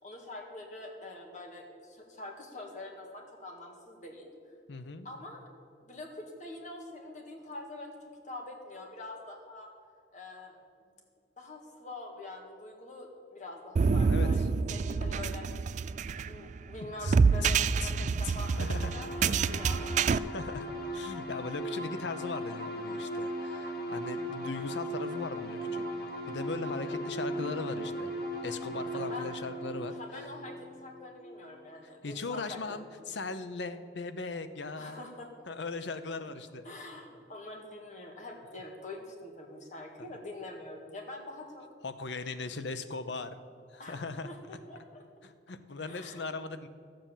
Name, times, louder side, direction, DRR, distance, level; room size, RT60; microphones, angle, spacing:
voice 1, 0.0-4.3 5.0-5.4 5.8-8.0 8.2-9.7 10.1-10.6 11.4-14.4 14.7-15.4 16.3-20.0 26.6-27.0 28.9-29.4 29.9-30.5 30.8-33.1 34.8-35.3 36.6-41.6 43.8-45.0 45.9-46.2, left 2 dB, 45° left, 1 dB, 2.0 m, -45 dB
voice 2, 4.7-5.1 14.0-14.5 17.0-17.1 17.4-17.5 17.8-17.9 18.2-18.9 20.3-25.9 26.3-28.1 28.4-29.9 32.0-35.0 35.5-36.6 40.0-40.1 41.8-43.4 43.7-44.3 45.2-46.7, left 3 dB, 85° left, 10 dB, 0.7 m, -39 dB
sound 1, 13.8-20.2, right 5 dB, 45° right, 0.3 m, -27 dB
sound 2, 18.1-31.6, equal, 60° left, 1.9 m, -38 dB
12.5 x 7.8 x 7.3 m, 2.2 s
head